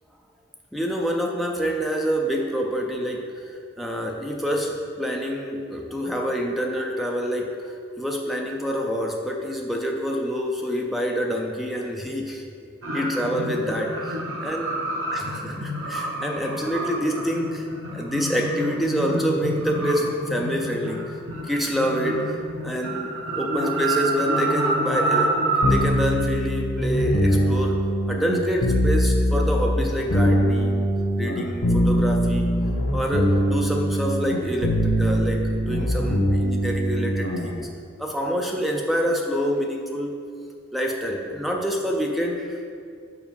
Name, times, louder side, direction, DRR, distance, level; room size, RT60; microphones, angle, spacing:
voice 1, 0.7-3.5 3.8-14.8 15.1-21.1 21.4-22.4 22.6-27.8 28.1-30.9 31.2-32.5 32.9-37.7 38.0-40.1 40.7-42.7, equal, ahead, 0 dB, 0.5 m, -27 dB
sound 1, 12.8-25.8, right 2 dB, 80° right, 1.0 m, -28 dB
sound 2, 25.6-37.5, equal, 85° left, 1.1 m, -22 dB
5.4 x 4.8 x 5.4 m, 2.3 s
head